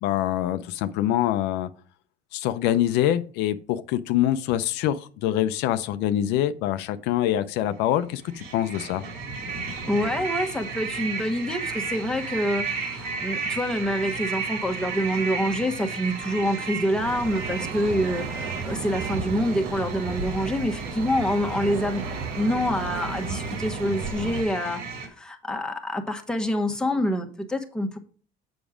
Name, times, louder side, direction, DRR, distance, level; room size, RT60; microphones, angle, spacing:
voice 1, 0.0-1.7 2.3-9.0, left 12 dB, 80° left, 0.6 m, -25 dB
sound 1, 7.9-25.1, right 4 dB, 60° right, 2.3 m, -34 dB
voice 2, 9.9-22.0 22.3-28.0, equal, 5° left, 1.2 m, -26 dB
sound 2, 17.0-24.4, right 5 dB, 90° right, 1.1 m, -34 dB
7.2 x 6.0 x 5.0 m
cardioid pair, 120°, 17 cm